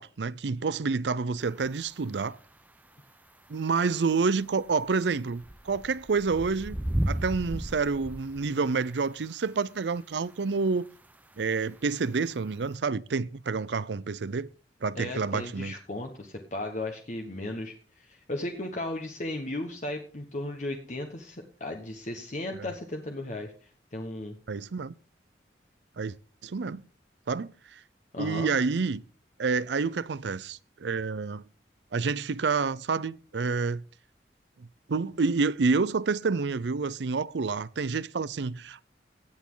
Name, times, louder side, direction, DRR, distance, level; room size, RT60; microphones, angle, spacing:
voice 1, 0.0-2.4 3.5-6.8 7.1-10.9 11.4-14.5 14.8-15.7 24.5-24.9 26.0-26.1 26.4-26.8 27.3-27.8 28.2-29.0 29.4-31.4 31.9-33.8 34.9-38.8, right 4 dB, 80° right, 0.5 m, -28 dB
sound 1, 1.5-1.7 3.5-3.6 4.6-8.9 10.4-10.5 11.4-11.6 11.9-12.0 12.7-12.8, equal, 10° right, 0.6 m, -33 dB
voice 2, 15.0-23.5 23.9-24.4 28.1-28.5, left 1 dB, 45° left, 1.3 m, -35 dB
17.5 x 8.4 x 3.9 m
head